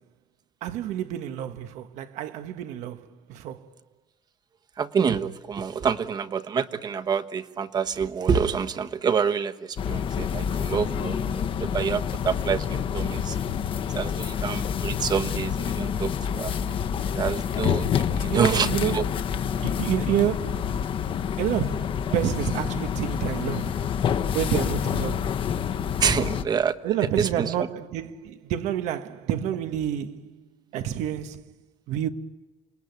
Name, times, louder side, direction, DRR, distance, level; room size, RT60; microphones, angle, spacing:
voice 1, 0.6-3.7 18.2-19.0 19.6-20.9 21.4-23.8 24.3-25.4 26.8-30.4 30.7-31.5 31.9-32.1, right 11 dB, 85° right, 1.4 m, -29 dB
voice 2, 4.8-13.4 13.9-16.5 17.1-18.7 18.9-19.0 26.0-26.8 27.2-27.7, right 6 dB, 35° right, 1.2 m, -27 dB
sound 1, 9.8-26.4, left 8 dB, 45° left, 1.2 m, -28 dB
28.5 x 20.5 x 9.5 m
cardioid pair, 135°, 12 cm